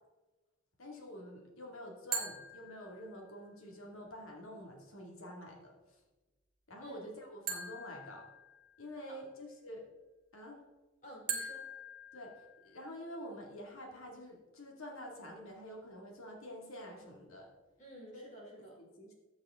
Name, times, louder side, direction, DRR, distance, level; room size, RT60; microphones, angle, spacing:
voice 1, 0.8-5.7 6.7-8.2 8.8-9.8 10.3-10.6 12.1-17.5 18.1-18.2 18.8-19.1, equal, 80° left, 0 dB, 2.3 m, -48 dB
sound 1, 2.1-3.4 7.5-9.0 11.3-13.0, right 4 dB, 45° right, 1.9 m, -42 dB
voice 2, 11.0-11.7 17.8-18.8, right 1 dB, 35° left, -2 dB, 3.5 m, -51 dB
14.0 x 8.0 x 3.7 m, 1.1 s
head